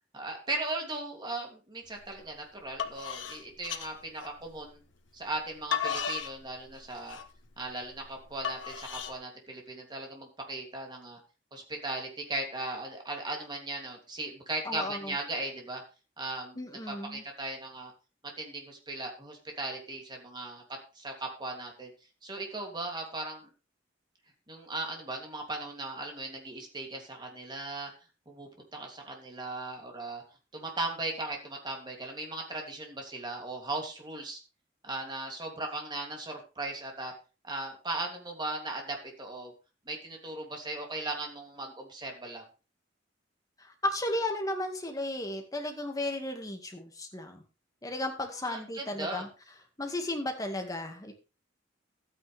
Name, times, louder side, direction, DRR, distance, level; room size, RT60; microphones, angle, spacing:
voice 1, 0.1-4.8 5.1-7.2 7.6-11.2 11.5-15.8 16.2-16.6 16.9-17.9 18.4-20.6 20.9-21.9 22.2-23.5 24.5-27.9 28.3-30.2 30.5-34.4 34.8-37.1 37.4-39.5 39.9-42.4 48.5-49.3, right 2 dB, 25° right, 1 dB, 2.9 m, -37 dB
sound 1, 2.0-2.2 2.6-4.7 5.3-9.1, left 8 dB, 75° left, 1.1 m, -36 dB
voice 2, 14.7-15.1 16.6-17.2 43.6-47.4 47.8-49.3 49.8-51.1, left 1 dB, 20° left, 4 dB, 2.0 m, -34 dB
13.0 x 9.2 x 3.5 m, 0.33 s
head